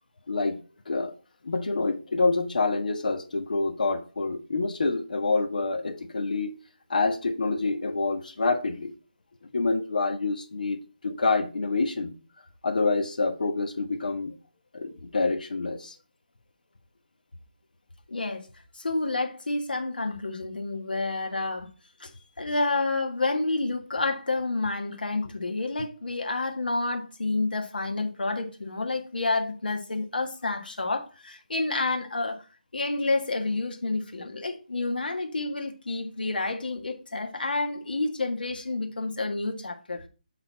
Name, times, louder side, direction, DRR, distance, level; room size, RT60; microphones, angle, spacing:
voice 1, 0.3-1.1 1.4-6.5 6.9-8.9 9.5-12.1 12.6-14.3 14.7-15.9, left 3 dB, 65° left, 1.3 m, -27 dB
voice 2, 18.1-18.5 18.7-21.7 22.0-22.1 22.4-32.4 32.7-40.1, left 3 dB, 90° left, 1.6 m, -29 dB
7.9 x 4.0 x 4.0 m
hypercardioid pair, 170°, 5 cm